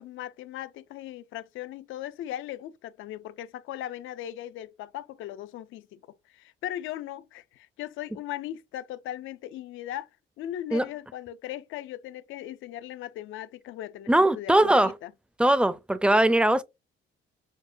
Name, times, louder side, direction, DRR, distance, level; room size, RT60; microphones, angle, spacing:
voice 1, 0.0-6.0 6.3-10.1 10.4-14.1 14.3-15.1, left 12 dB, 85° left, 0.4 m, -38 dB
voice 2, 14.1-14.9 15.4-16.6, right 1 dB, 5° right, 0.4 m, -20 dB
6.3 x 2.1 x 2.6 m
cardioid pair, 90°, 20 cm